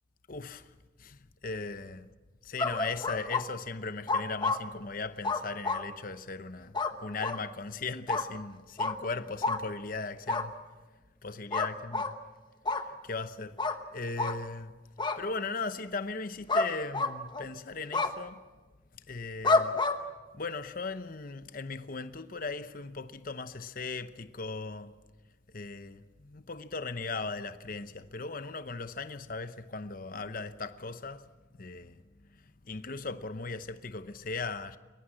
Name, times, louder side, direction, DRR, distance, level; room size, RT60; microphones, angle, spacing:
voice 1, 0.3-0.7 1.0-2.1 2.4-10.5 11.2-12.2 12.7-13.6 13.9-14.8 15.2-18.4 19.1-19.7 20.3-24.9 25.5-31.3 31.6-32.0 32.6-34.8, left 4 dB, 50° left, 0.9 m, -38 dB
sound 1, 2.6-3.4 4.1-4.6 5.2-5.9 6.7-6.9 7.2-7.4 8.1-8.3 8.8-8.9 9.4-9.6 10.3-10.5 11.5-12.1 12.7-12.8 13.6-13.8 14.2-14.4 15.0-15.2 16.5-16.7 16.9-17.5 17.9-18.1 19.4-20.0, left 3 dB, 25° left, 1.1 m, -28 dB
22.0 x 21.5 x 7.5 m
head